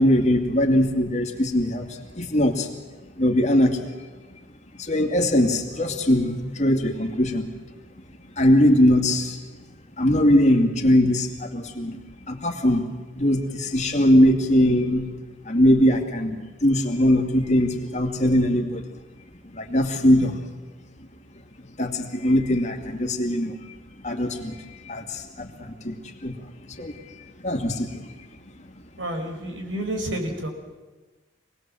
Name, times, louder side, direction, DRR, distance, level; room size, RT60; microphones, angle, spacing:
voice 1, 0.0-2.7 3.2-4.0 4.8-7.6 8.3-9.4 10.0-12.9 13.1-15.1 15.4-18.9 19.4-20.4 21.8-23.7 24.0-28.3, left 1 dB, 40° left, 4 dB, 2.4 m, -21 dB
voice 2, 29.0-30.5, right 1 dB, 85° right, 4 dB, 4.9 m, -30 dB
27.5 x 20.0 x 7.7 m, 1.3 s
head